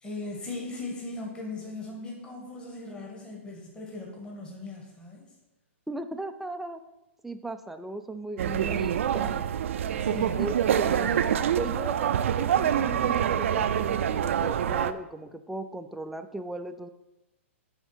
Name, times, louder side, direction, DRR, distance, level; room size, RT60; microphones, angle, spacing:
voice 1, 0.0-5.2 10.0-10.4 10.9-11.2, left 2 dB, 15° left, -1 dB, 1.5 m, -38 dB
voice 2, 5.9-6.8 7.2-9.5 10.4-11.1 11.6-16.9, right 2 dB, 5° right, 8 dB, 0.3 m, -37 dB
sound 1, 8.4-14.9, right 9 dB, 70° right, 0.4 m, -26 dB
10.0 x 3.6 x 5.6 m, 0.97 s
hypercardioid pair, 140°, 7 cm